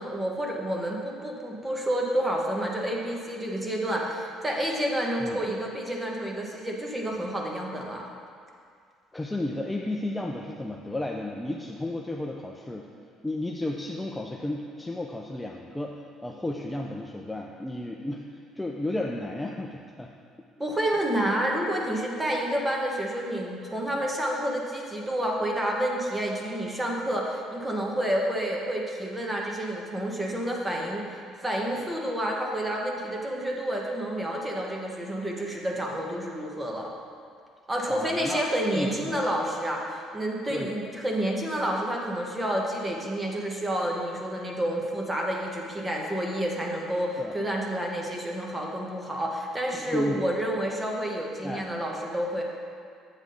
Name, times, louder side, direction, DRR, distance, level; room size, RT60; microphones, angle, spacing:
voice 1, 0.0-8.1 20.6-36.9 37.7-52.4, right 1 dB, 15° right, -1 dB, 1.3 m, -29 dB
voice 2, 9.1-12.9 13.2-18.2 18.6-20.1 20.9-21.0 37.9-38.5 38.7-39.2 40.5-40.7 47.2-47.3 49.7-50.2 51.4-51.7, left 1 dB, 10° left, 0 dB, 0.5 m, -33 dB
8.2 x 7.4 x 3.9 m, 2.2 s
cardioid pair, 110°, 0 cm